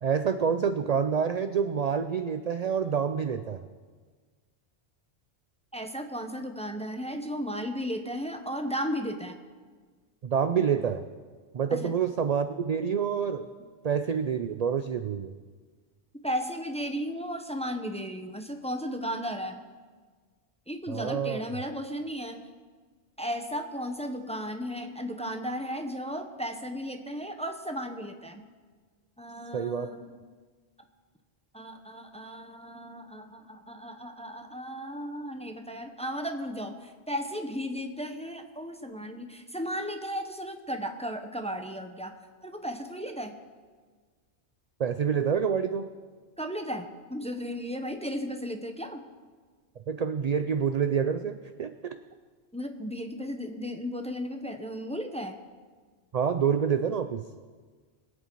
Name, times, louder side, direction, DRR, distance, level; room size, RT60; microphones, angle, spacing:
voice 1, 0.0-3.6 10.2-11.0 11.5-13.5 13.8-15.3 20.9-21.4 29.5-29.9 44.8-45.9 49.9-52.0 56.1-57.2, right 7 dB, 55° right, 9 dB, 0.4 m, -27 dB
voice 2, 5.7-9.4 11.8-11.9 16.2-19.6 20.7-22.5 23.2-28.4 29.2-30.3 31.5-42.2 42.4-43.4 46.4-49.0 52.5-55.4, equal, 5° left, 6 dB, 0.7 m, -35 dB
22.0 x 8.3 x 4.6 m, 1.5 s
omnidirectional pair, 1.2 m